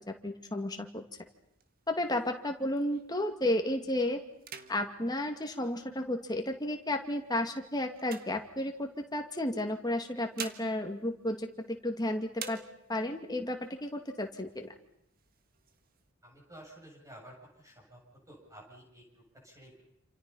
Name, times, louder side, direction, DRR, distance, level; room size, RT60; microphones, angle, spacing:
voice 1, 0.1-1.0 1.9-4.2 4.7-12.6 12.9-14.7, left 1 dB, 20° left, 4 dB, 2.3 m, -33 dB
sound 1, 1.1-3.3 3.8-4.0 4.3-6.3 6.9-9.1 10.0-12.0 12.3-13.2 13.6-13.7 14.0-14.7 15.1-16.0, right 6 dB, 40° right, 1.7 m, -48 dB
voice 2, 16.2-18.0 18.3-19.8, right 1 dB, 15° right, 0 dB, 7.4 m, -52 dB
28.5 x 27.5 x 5.6 m, 0.75 s
head